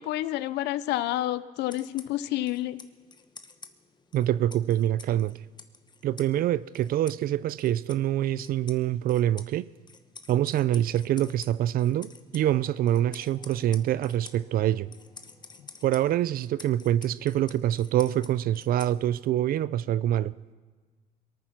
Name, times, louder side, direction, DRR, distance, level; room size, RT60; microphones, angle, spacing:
voice 1, 0.0-2.8, left 14 dB, 85° left, 0.6 m, -29 dB
sound 1, 1.6-19.4, left 4 dB, 25° left, 1.0 m, -51 dB
voice 2, 4.1-5.4 6.0-9.7 10.3-14.9 15.8-20.3, right 12 dB, 60° right, 0.5 m, -25 dB
sound 2, 12.4-18.6, left 4 dB, 60° left, 4.2 m, -59 dB
22.0 x 9.3 x 5.9 m
cardioid pair, 110°, 17 cm